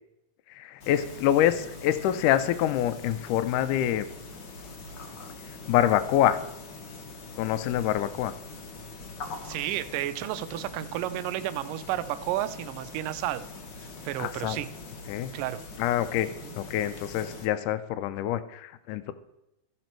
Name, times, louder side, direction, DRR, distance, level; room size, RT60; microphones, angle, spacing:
voice 1, 0.5-4.1 5.5-6.4 7.4-8.3 14.2-14.6 15.1-15.3 15.8-16.3 16.6-19.1, left 11 dB, 80° left, 12 dB, 2.1 m, -26 dB
sound 1, 0.8-17.5, left 3 dB, 55° left, 1.3 m, -43 dB
voice 2, 9.4-13.5 14.1-14.7 15.3-15.6 16.4-16.5, right 13 dB, 90° right, 13 dB, 2.3 m, -32 dB
15.0 x 6.1 x 4.5 m, 0.91 s
omnidirectional pair, 3.7 m